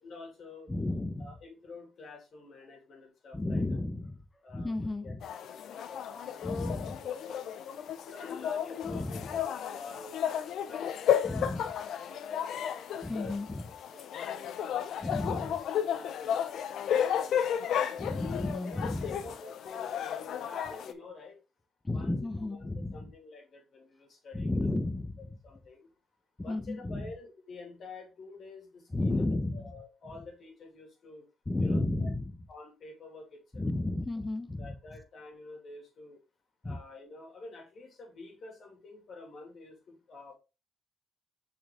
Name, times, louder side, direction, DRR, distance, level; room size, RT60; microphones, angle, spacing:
voice 1, 0.0-0.7 1.2-3.8 4.4-4.7 5.0-7.4 8.0-10.3 10.6-12.5 13.1-13.6 13.9-16.7 17.0-18.1 18.6-21.4 21.9-24.7 25.4-25.9 26.4-31.3 31.6-32.1 32.5-33.7 34.6-36.2 36.6-40.3, left 3 dB, 55° left, 2.7 m, -49 dB
voice 2, 0.7-1.3 3.3-4.2 4.5-5.2 6.4-7.0 8.9-9.3 11.2-11.7 13.0-13.7 15.0-15.5 18.0-19.1 21.8-23.0 24.3-25.3 26.5-27.0 28.9-29.6 31.5-32.2 33.5-34.7 36.6-36.8, left 2 dB, 15° left, 1.1 m, -32 dB
sound 1, 5.2-20.9, left 9 dB, 70° left, 0.6 m, -33 dB
5.8 x 4.4 x 3.7 m
cardioid pair, 90°, 0 cm